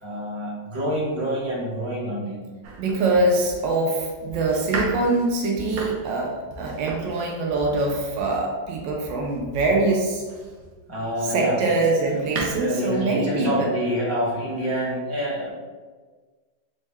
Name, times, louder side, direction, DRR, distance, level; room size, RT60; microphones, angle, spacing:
voice 1, 0.0-2.4 10.9-11.6 12.4-15.5, equal, 15° right, -7 dB, 0.6 m, -27 dB
Domestic sounds home sounds, 2.6-10.8 11.4-12.5, right 2 dB, 65° right, 1.0 m, -36 dB
voice 2, 2.8-10.2 11.2-13.7, right 2 dB, 85° right, -1 dB, 1.3 m, -23 dB
4.2 x 2.1 x 3.4 m, 1.4 s
omnidirectional pair, 2.0 m